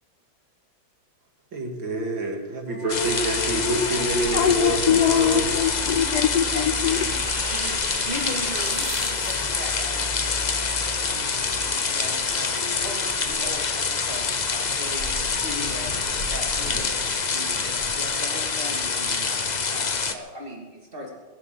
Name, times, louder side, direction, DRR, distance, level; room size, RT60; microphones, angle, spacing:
voice 1, 1.5-5.4, right 2 dB, 75° right, 1 dB, 3.1 m, -27 dB
voice 2, 2.7-4.1 4.4-4.5 5.9-6.1 6.7-7.2 7.5-12.5 12.8-21.1, equal, 25° right, 0 dB, 3.1 m, -39 dB
sound 1, 2.9-20.1, left 4 dB, 50° left, 0.5 m, -26 dB
sound 2, 3.3-14.2 14.5-14.6 14.8-18.0, left 1 dB, 85° left, 5.7 m, -39 dB
voice 3, 4.3-7.1, left 9 dB, 65° left, 9 dB, 1.1 m, -22 dB
sound 3, 5.9-9.8, right 7 dB, 55° right, 1.3 m, -40 dB
20.5 x 7.9 x 8.3 m, 1.4 s
omnidirectional pair, 2.1 m